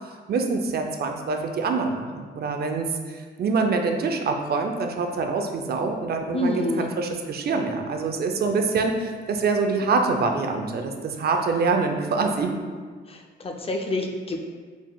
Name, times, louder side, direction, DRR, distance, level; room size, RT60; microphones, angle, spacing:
voice 1, 0.3-12.5, right 4 dB, 50° right, 4 dB, 0.5 m, -25 dB
voice 2, 6.3-6.9 13.1-14.5, left 1 dB, 30° left, 3 dB, 0.5 m, -27 dB
4.9 x 3.5 x 2.3 m, 1.5 s
cardioid pair, 90°, 20 cm